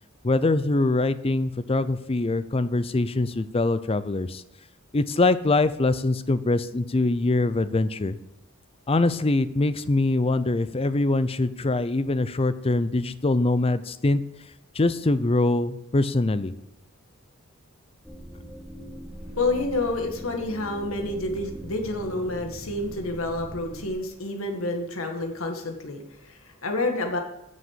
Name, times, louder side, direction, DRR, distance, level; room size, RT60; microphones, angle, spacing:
voice 1, 0.2-4.4 4.9-8.2 8.9-14.2 14.7-16.5, left 2 dB, 25° left, 13 dB, 0.5 m, -23 dB
sound 1, 18.0-23.9, equal, ahead, 0.9 m, -41 dB
voice 2, 19.4-27.2, left 2 dB, 75° left, 4 dB, 1.9 m, -29 dB
9.5 x 6.5 x 7.4 m, 0.85 s
head